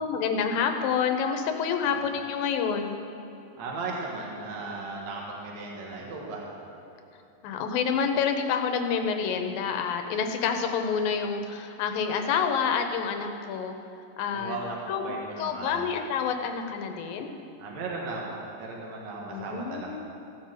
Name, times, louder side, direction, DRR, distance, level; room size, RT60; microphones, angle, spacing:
voice 1, 0.0-3.0 7.4-13.7 14.2-14.6 14.9-17.4 19.3-20.0, left 6 dB, 80° left, 5 dB, 2.5 m, -28 dB
voice 2, 3.6-6.4 14.3-15.9 17.6-20.0, right 3 dB, 55° right, -2 dB, 2.5 m, -36 dB
16.0 x 6.1 x 7.4 m, 2.9 s
omnidirectional pair, 4.2 m